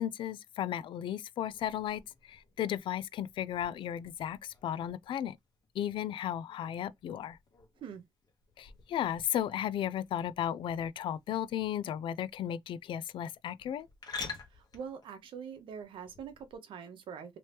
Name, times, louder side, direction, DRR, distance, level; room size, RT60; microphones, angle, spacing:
voice 1, 0.0-2.0 2.3-4.4 4.6-5.4 5.8-7.4 8.6-13.9, left 10 dB, 70° left, 0.3 m, -34 dB
sound 1, 1.5-16.6, left 4 dB, 50° left, 1.1 m, -50 dB
voice 2, 14.5-17.4, right 7 dB, 75° right, 0.8 m, -44 dB
3.0 x 2.9 x 3.3 m
cardioid pair, 90°, 9 cm